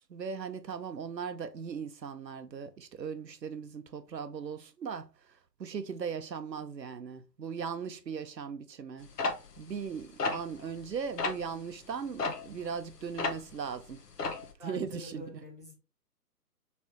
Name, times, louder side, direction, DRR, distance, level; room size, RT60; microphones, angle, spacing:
voice 1, 0.1-5.1 5.6-9.1 9.6-14.0 14.6-15.5, right 6 dB, 85° right, 0.8 m, -38 dB
sound 1, 9.2-10.9 11.2-11.5 12.2-13.6 13.9-14.5, left 3 dB, 70° left, 1.1 m, -33 dB
voice 2, 14.6-15.7, left 1 dB, 10° left, 0.5 m, -46 dB
4.3 x 3.4 x 2.9 m
figure-of-eight pair, 140°, 49 cm